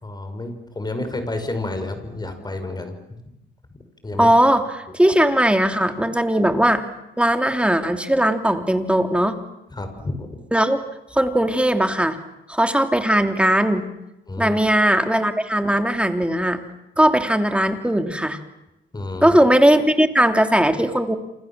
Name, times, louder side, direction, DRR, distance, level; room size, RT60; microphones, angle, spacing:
voice 1, 0.0-3.0 4.0-4.3 9.7-10.3 14.3-14.6 18.9-19.4, left 2 dB, 20° left, 7 dB, 5.9 m, -30 dB
voice 2, 4.2-6.8 7.2-9.4 10.5-10.8 11.1-12.2 12.5-13.9 14.4-16.6 17.0-18.4 19.2-21.2, right 1 dB, 5° right, 6 dB, 3.0 m, -18 dB
28.0 x 27.0 x 7.5 m, 0.90 s
cardioid pair, 90°, 20 cm